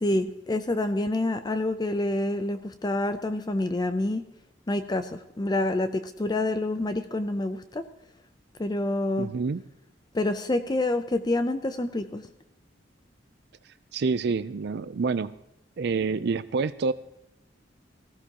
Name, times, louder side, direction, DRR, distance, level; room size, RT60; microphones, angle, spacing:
voice 1, 0.0-4.2 4.7-7.8 8.6-9.3 10.1-12.3, left 2 dB, 25° left, 9 dB, 0.5 m, -27 dB
voice 2, 9.2-9.6 13.9-15.3 15.8-16.9, right 4 dB, 65° right, 14 dB, 0.4 m, -27 dB
19.0 x 15.5 x 2.9 m, 0.86 s
head